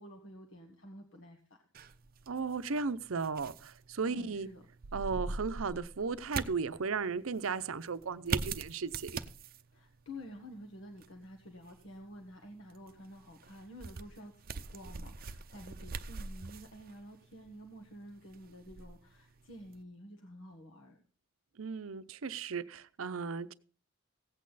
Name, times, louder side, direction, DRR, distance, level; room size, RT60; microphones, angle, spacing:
voice 1, 0.0-1.6 4.0-4.7 9.7-21.0, equal, 65° left, 1.4 m, -50 dB
sound 1, 1.7-19.8, right 4 dB, 45° right, 0.6 m, -44 dB
voice 2, 2.3-4.5 4.9-9.2 21.6-23.5, right 5 dB, 80° right, 0.7 m, -35 dB
16.0 x 8.6 x 4.0 m
head